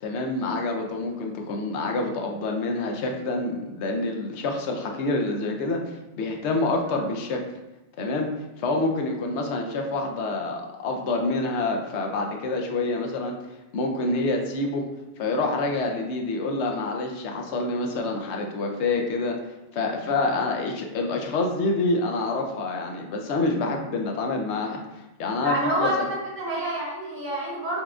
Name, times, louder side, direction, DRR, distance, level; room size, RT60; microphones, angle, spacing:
voice 1, 0.0-5.8 6.2-7.4 8.0-8.3 8.6-13.3 13.7-14.9 15.2-19.4 19.7-24.8 25.2-25.9, left 2 dB, 85° left, 2 dB, 0.9 m, -27 dB
voice 2, 25.4-27.8, right 1 dB, 60° right, -6 dB, 1.2 m, -28 dB
5.5 x 2.3 x 2.4 m, 0.98 s
omnidirectional pair, 1.1 m